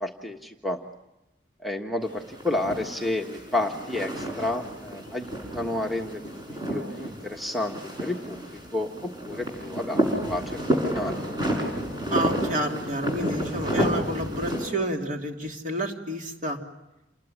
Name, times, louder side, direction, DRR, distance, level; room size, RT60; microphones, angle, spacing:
voice 1, 0.0-0.8 1.6-10.6 10.8-11.2, left 2 dB, ahead, 0 dB, 1.4 m, -31 dB
sound 1, 2.1-14.7, equal, 25° right, 6.2 m, -30 dB
voice 2, 12.1-16.6, right 1 dB, 45° right, 2 dB, 3.1 m, -29 dB
28.5 x 21.0 x 10.0 m, 0.96 s
head